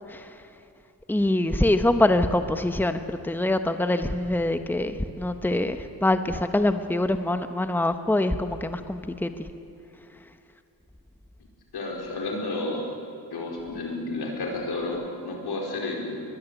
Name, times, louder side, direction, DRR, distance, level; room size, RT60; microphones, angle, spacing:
voice 1, 1.1-9.3, left 1 dB, 5° left, 8 dB, 1.1 m, -24 dB
voice 2, 11.7-12.8 13.3-16.2, left 2 dB, 90° left, 0 dB, 4.9 m, -31 dB
22.5 x 21.5 x 8.3 m, 2.7 s
cardioid pair, 90°, 38 cm